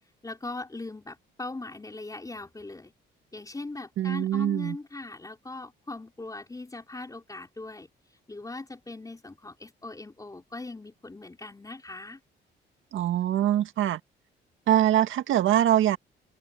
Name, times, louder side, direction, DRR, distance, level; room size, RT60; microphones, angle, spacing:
voice 1, 0.2-2.9 3.3-7.9 8.3-12.2, left 2 dB, 15° left, 3.9 m, -40 dB
voice 2, 4.0-4.8 12.9-14.0 14.7-16.0, right 12 dB, 80° right, 1.7 m, -23 dB
cardioid pair, 90°, 20 cm